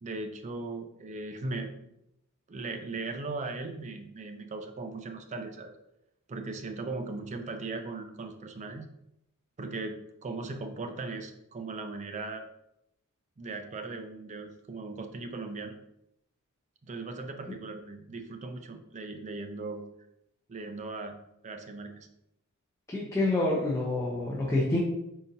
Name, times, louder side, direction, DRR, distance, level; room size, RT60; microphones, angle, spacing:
voice 1, 0.0-1.7 2.5-5.7 6.3-8.9 9.6-12.5 13.4-15.8 16.8-19.8 20.5-21.2 21.4-22.1, right 3 dB, 30° right, 6 dB, 0.4 m, -38 dB
voice 2, 22.9-24.8, left 2 dB, 15° left, -4 dB, 0.6 m, -27 dB
4.2 x 3.8 x 2.7 m, 0.83 s
head